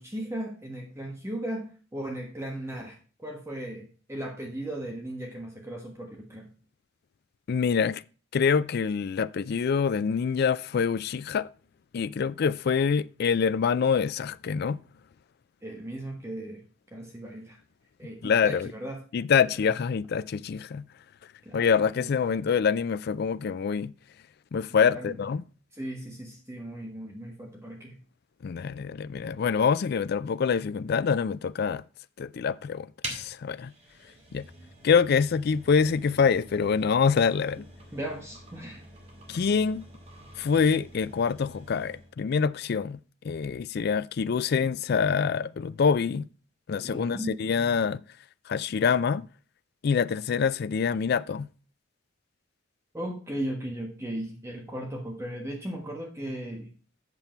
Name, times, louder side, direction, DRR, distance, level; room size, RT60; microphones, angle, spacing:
voice 1, 0.0-6.5 15.6-16.6 16.9-17.6 18.0-19.0 21.4-21.7 21.9-22.3 24.7-25.2 25.7-28.0 37.9-38.8 46.8-47.4 52.9-56.7, right 1 dB, 15° right, 1.3 m, -37 dB
voice 2, 7.5-8.0 8.3-11.5 11.9-14.8 18.2-18.7 19.1-20.8 21.5-23.9 24.5-25.4 28.4-31.8 32.2-33.7 34.3-34.4 34.8-37.6 39.3-39.8 40.4-43.0 43.2-46.3 46.7-48.0 48.5-49.2 49.8-51.5, left 6 dB, 50° left, 0.4 m, -25 dB
sound 1, 33.0-42.2, right 2 dB, 30° right, 2.4 m, -46 dB
8.1 x 7.0 x 4.4 m
head